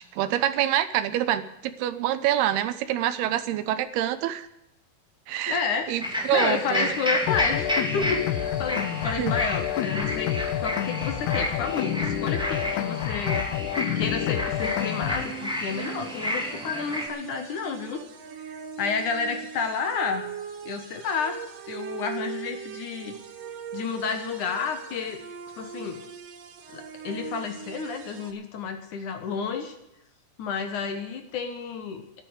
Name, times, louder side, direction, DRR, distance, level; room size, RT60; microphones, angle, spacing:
voice 1, 0.0-4.5 5.3-6.9 9.2-9.3, right 12 dB, 80° right, 13 dB, 2.9 m, -26 dB
voice 2, 5.5-13.4 14.0-18.0 18.8-20.3 20.7-23.2 23.7-25.2 25.6-26.0 26.7-29.8 30.4-32.0, left 5 dB, 60° left, 7 dB, 2.5 m, -31 dB
sound 1, 6.0-17.1, left 1 dB, ahead, 1.9 m, -31 dB
sound 2, 7.3-15.3, left 11 dB, 85° left, 2.9 m, -28 dB
sound 3, 14.6-28.3, right 8 dB, 65° right, 2.8 m, -40 dB
13.5 x 10.5 x 8.0 m, 0.84 s
omnidirectional pair, 4.6 m